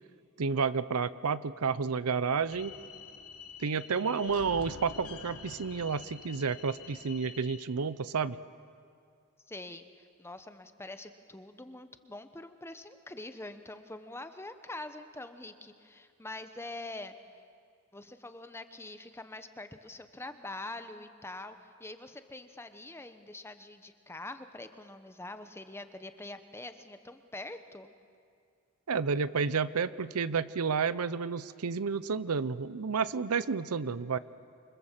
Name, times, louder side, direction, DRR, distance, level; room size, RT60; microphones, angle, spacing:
voice 1, 0.4-2.7 3.6-8.4 28.9-34.2, right 5 dB, 75° right, 15 dB, 0.7 m, -30 dB
sound 1, 2.5-7.6, left 4 dB, 75° left, 1.6 m, -47 dB
voice 2, 9.5-17.2 17.9-27.9, left 2 dB, 10° left, 9 dB, 1.0 m, -44 dB
27.5 x 24.5 x 7.5 m, 2.3 s
head